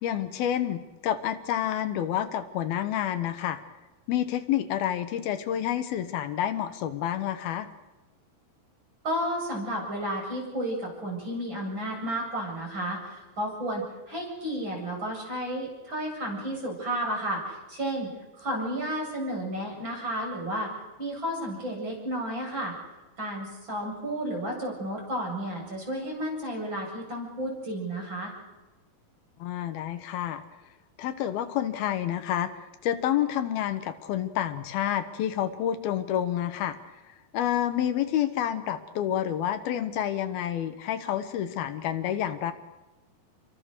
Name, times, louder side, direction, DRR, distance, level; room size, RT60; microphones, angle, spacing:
voice 1, 0.0-3.6 4.1-7.7 29.4-30.4 31.0-32.5 32.8-36.8 37.1-42.5, left 11 dB, 80° left, 9 dB, 3.0 m, -29 dB
voice 2, 9.0-20.7 21.0-22.7 23.2-28.3, right 1 dB, 30° right, 0 dB, 8.6 m, -32 dB
29.5 x 23.5 x 6.7 m, 1.1 s
omnidirectional pair, 4.3 m